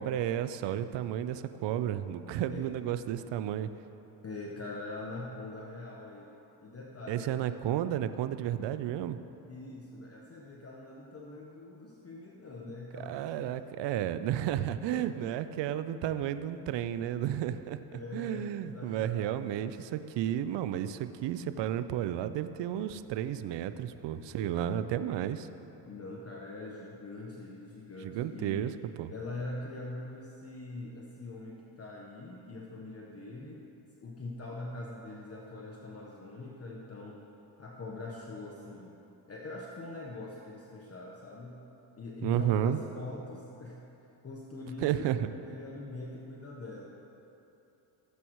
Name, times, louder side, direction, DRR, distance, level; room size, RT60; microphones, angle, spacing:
voice 1, 0.0-3.7 7.1-9.2 13.0-25.5 28.0-28.7 29.0-29.1 42.2-42.8 44.8-45.3, right 11 dB, 65° right, 11 dB, 0.6 m, -32 dB
voice 2, 4.2-6.3 6.6-7.5 9.5-13.5 14.9-15.1 17.9-19.8 25.9-28.7 29.1-33.6 34.0-37.2 37.6-39.0 39.3-41.6 42.0-43.8 44.2-45.1 45.4-46.9, left 2 dB, 30° left, -2 dB, 1.1 m, -43 dB
15.5 x 7.8 x 3.1 m, 3.0 s
supercardioid pair, 85°, 47 cm